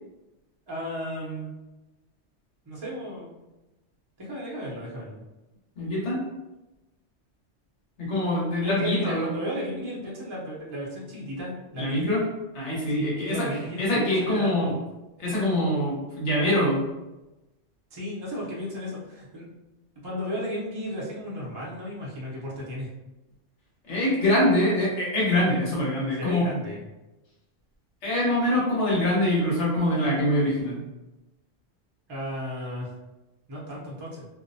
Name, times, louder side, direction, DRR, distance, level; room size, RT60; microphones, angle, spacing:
voice 1, 0.7-1.5 2.7-3.3 4.2-5.2 8.6-12.1 13.0-14.7 17.9-19.5 20.0-22.9 26.1-26.9 32.1-32.9 33.5-34.3, equal, 30° right, -5 dB, 0.5 m, -34 dB
voice 2, 5.8-6.2 8.0-9.3 11.8-12.2 12.5-13.5 13.8-14.7 15.2-16.9 23.9-26.5 28.0-30.8, left 1 dB, 75° left, -6 dB, 1.3 m, -24 dB
2.6 x 2.0 x 2.6 m, 1.0 s
omnidirectional pair, 1.2 m